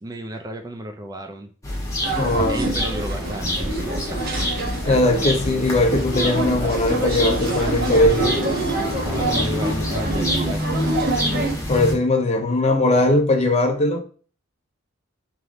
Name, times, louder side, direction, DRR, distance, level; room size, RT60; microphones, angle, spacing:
voice 1, 0.0-1.5 2.5-4.5 9.0-10.7, equal, 20° right, 0.4 m, -33 dB
sound 1, 1.6-11.9, equal, 15° left, 1.1 m, -27 dB
sound 2, 2.0-11.5, right 2 dB, 50° right, 0.9 m, -27 dB
voice 2, 2.2-2.6 4.9-8.4 11.7-14.0, left 2 dB, 35° left, 0.5 m, -19 dB
sound 3, 3.4-10.4, left 3 dB, 85° left, 0.6 m, -33 dB
3.5 x 3.0 x 3.5 m
head